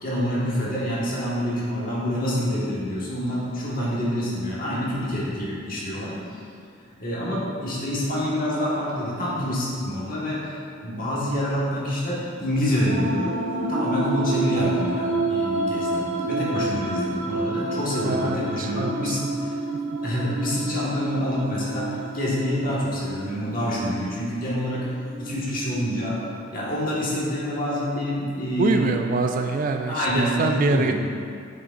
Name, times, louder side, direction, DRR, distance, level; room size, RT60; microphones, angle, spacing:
voice 1, 0.0-6.2 7.0-13.4 13.7-19.6 20.0-24.9 25.2-26.2 26.5-29.0 29.3-29.4 29.9-31.1, equal, 45° left, -6 dB, 1.5 m, -27 dB
sound 1, 12.8-26.3, right 2 dB, 65° right, 1.5 m, -29 dB
voice 2, 18.0-19.2 28.6-31.1, right 4 dB, 40° right, 5 dB, 0.3 m, -25 dB
7.5 x 6.3 x 2.5 m, 2.4 s
head